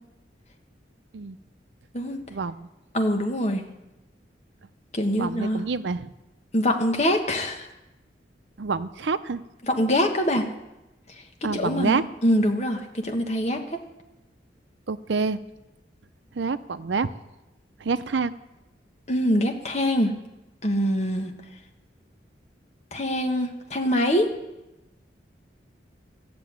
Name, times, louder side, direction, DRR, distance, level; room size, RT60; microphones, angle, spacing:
voice 1, 2.9-3.6 4.9-5.6 6.5-7.7 9.6-10.5 11.5-13.8 19.1-20.1 20.6-21.3 22.9-24.3, equal, 40° left, 4 dB, 1.4 m, -24 dB
voice 2, 5.2-6.1 8.6-9.4 11.4-12.0 14.9-15.4 16.4-17.1 17.8-18.3, right 4 dB, 85° right, 13 dB, 0.6 m, -27 dB
13.5 x 6.8 x 9.4 m, 0.98 s
head